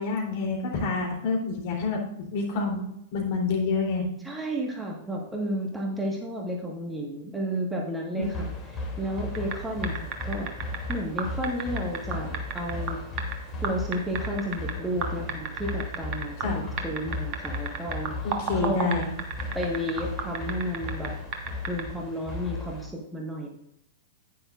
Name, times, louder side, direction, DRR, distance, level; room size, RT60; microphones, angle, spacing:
voice 1, 0.0-2.8 3.1-4.1 8.1-8.3 16.4-16.6 18.2-19.1, left 4 dB, 50° left, 0 dB, 3.2 m, -28 dB
voice 2, 4.2-10.5 10.9-13.0 13.6-18.1 18.6-19.0 19.5-21.1 21.7-23.5, equal, 10° right, 0 dB, 1.6 m, -32 dB
stere-atmo-schoeps-m-s-forest-drums, 8.2-22.9, left 2 dB, 20° left, 2.8 m, -36 dB
sound 1, 9.3-9.6 9.8-13.3 13.6-14.7 15.0-16.5 16.8-21.1 21.3-21.8, right 7 dB, 40° right, 1.5 m, -32 dB
10.0 x 9.6 x 2.5 m, 0.78 s
figure-of-eight pair, 100°, 0 cm